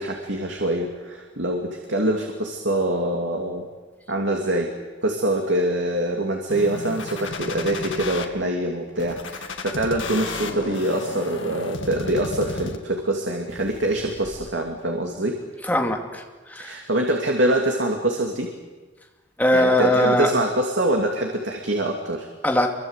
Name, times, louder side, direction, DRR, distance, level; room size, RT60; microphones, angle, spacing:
voice 1, 0.0-3.7 4.1-4.7 5.0-15.4 16.6-18.5 19.5-22.3, right 1 dB, 75° right, 2 dB, 2.7 m, -24 dB
sound 1, 6.5-8.3 9.0-13.0 13.5-14.5, left 3 dB, 90° left, 2.1 m, -33 dB
voice 2, 15.6-16.8 19.4-20.3 22.4-22.7, left 1 dB, 10° left, 2 dB, 2.7 m, -21 dB
27.5 x 24.0 x 8.3 m, 1.3 s
head